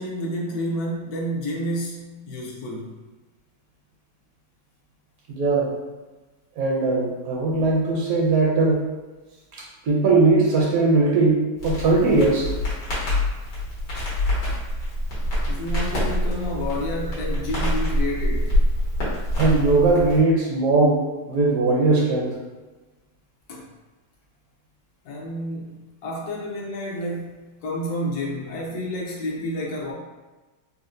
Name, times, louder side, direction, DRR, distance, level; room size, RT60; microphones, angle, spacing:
voice 1, 0.0-3.0 15.5-18.6 23.5-23.7 25.0-25.8 26.0-29.9, equal, 70° left, -3 dB, 1.1 m, -30 dB
voice 2, 5.3-5.7 6.6-8.9 9.5-12.5 19.4-22.4, right 3 dB, 70° right, -2 dB, 0.9 m, -20 dB
Crackle, 11.6-20.2, left 1 dB, 90° left, 1.8 m, -25 dB
4.2 x 2.1 x 2.5 m, 1.2 s
omnidirectional pair, 1.8 m